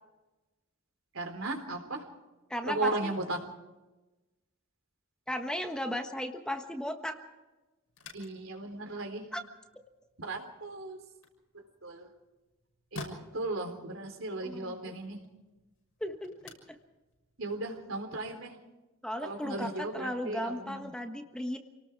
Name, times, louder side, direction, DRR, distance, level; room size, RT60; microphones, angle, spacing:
voice 1, 1.1-2.1 2.7-3.4 8.1-9.3 10.2-11.0 11.5-12.1 12.9-15.2 17.4-18.6 19.2-20.9, right 2 dB, 70° right, 4 dB, 4.0 m, -36 dB
voice 2, 2.5-2.9 5.3-7.2 9.3-9.4 14.4-14.7 16.0-16.3 16.7-16.8 19.0-21.6, equal, 5° left, 5 dB, 1.4 m, -35 dB
sound 1, 7.8-18.3, left 2 dB, 85° left, 6.3 m, -52 dB
28.5 x 19.0 x 4.7 m, 1.1 s
head